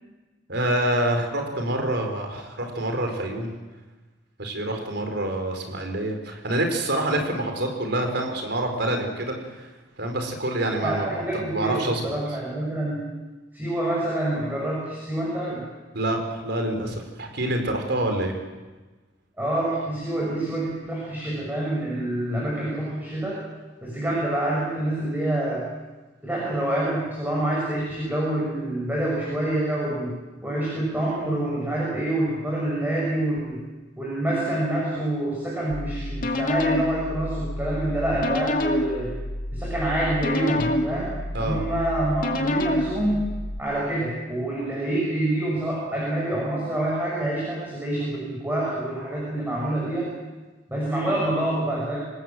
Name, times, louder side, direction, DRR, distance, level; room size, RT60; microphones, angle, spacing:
voice 1, 0.5-3.5 4.4-9.7 10.0-12.1 15.9-18.3 41.3-41.6, right 1 dB, 60° right, 4 dB, 4.9 m, -27 dB
voice 2, 10.8-13.1 13.5-15.6 19.4-23.4 23.8-25.7 26.2-30.1 30.4-33.6 34.0-39.1 39.5-41.1 41.4-43.2 43.6-50.1 50.7-52.0, right 1 dB, 10° right, -5 dB, 7.1 m, -27 dB
sound 1, 35.7-43.6, left 1 dB, 50° left, 2.3 m, -28 dB
26.5 x 19.5 x 7.7 m, 1.2 s
head